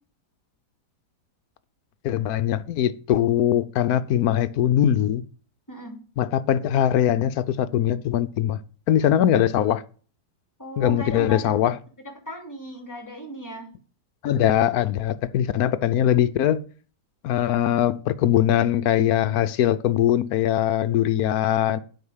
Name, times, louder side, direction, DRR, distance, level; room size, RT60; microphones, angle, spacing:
voice 1, 2.0-5.2 6.2-8.6 8.9-9.8 10.8-11.7 14.2-16.6 17.2-21.8, left 11 dB, 70° left, 1.0 m, -21 dB
voice 2, 5.7-6.0 10.6-11.6 12.3-13.7, equal, 10° left, 2.8 m, -35 dB
8.0 x 5.6 x 7.2 m
omnidirectional pair, 1.8 m